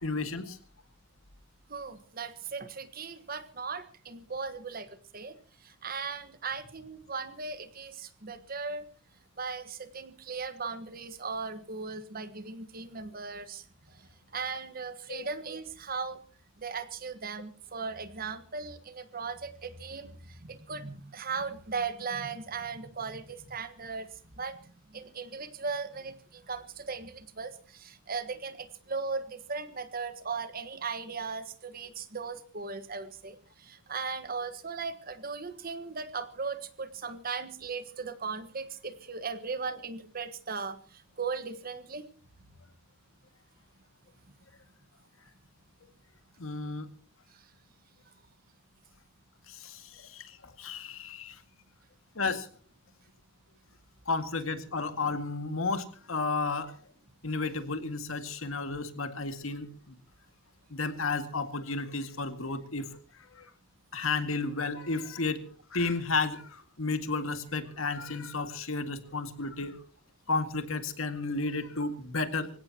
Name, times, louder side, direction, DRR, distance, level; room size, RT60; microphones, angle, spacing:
voice 1, 0.0-0.6 15.1-15.3 46.4-46.9 49.5-51.4 52.2-52.5 54.1-56.8 57.2-60.0 60.7-62.9 63.4-63.5 63.9-65.4 65.7-69.8 70.3-72.5, left 3 dB, 85° left, 8 dB, 2.0 m, -32 dB
voice 2, 1.7-5.4 5.6-8.9 9.4-13.6 14.3-16.2 16.6-24.1 24.4-24.6 24.9-42.0, right 5 dB, 45° right, 12 dB, 1.4 m, -37 dB
25.5 x 16.5 x 3.0 m, 0.42 s
head